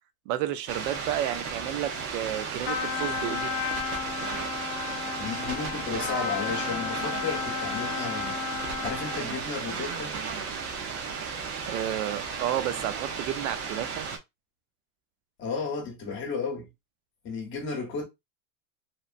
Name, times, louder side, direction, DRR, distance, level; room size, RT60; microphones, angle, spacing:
voice 1, 0.3-3.5 11.7-14.1, right 12 dB, 60° right, 0.5 m, -31 dB
sound 1, 0.7-14.2, right 5 dB, 90° right, 0.8 m, -34 dB
Trumpet, 2.6-9.3, left 7 dB, 50° left, 0.6 m, -33 dB
voice 2, 5.2-8.4 8.8-10.2 15.4-16.7 17.2-18.1, left 5 dB, 25° left, 0.9 m, -33 dB
3.0 x 2.0 x 2.4 m
supercardioid pair, 150°, 43 cm